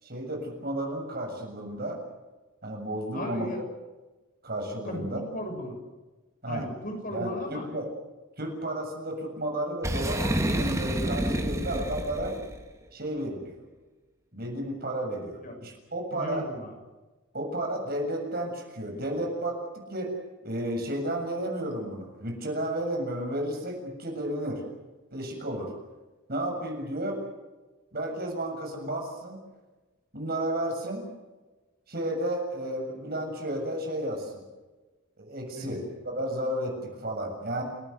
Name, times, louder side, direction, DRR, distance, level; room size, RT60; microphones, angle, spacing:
voice 1, 0.0-2.0 2.6-3.5 4.4-5.2 6.4-6.7 7.1-7.9 8.4-12.4 12.9-13.6 14.3-16.4 17.3-19.6 19.9-20.1 20.4-24.6 25.1-25.7 26.3-27.2 27.9-29.4 30.1-31.1 31.9-34.4 35.2-37.6, right 1 dB, 45° right, 3 dB, 7.2 m, -32 dB
voice 2, 3.1-3.6 4.8-5.8 6.5-7.7 15.4-15.5 16.1-16.7 35.5-35.8, equal, 40° left, 4 dB, 6.8 m, -36 dB
Boom, 9.8-12.6, right 1 dB, 15° right, 1.9 m, -29 dB
29.0 x 18.5 x 8.0 m, 1.2 s
head